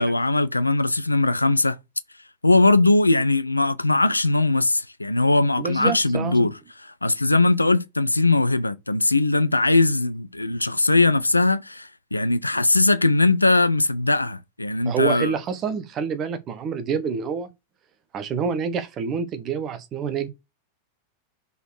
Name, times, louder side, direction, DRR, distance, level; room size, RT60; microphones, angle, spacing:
voice 1, 0.0-1.8 2.4-6.5 6.8-15.3, left 2 dB, 85° left, 0.4 m, -20 dB
voice 2, 5.6-6.5 14.8-17.5 18.1-20.3, right 6 dB, 30° right, 1.0 m, -27 dB
5.4 x 4.0 x 4.6 m
figure-of-eight pair, 90°, 0 cm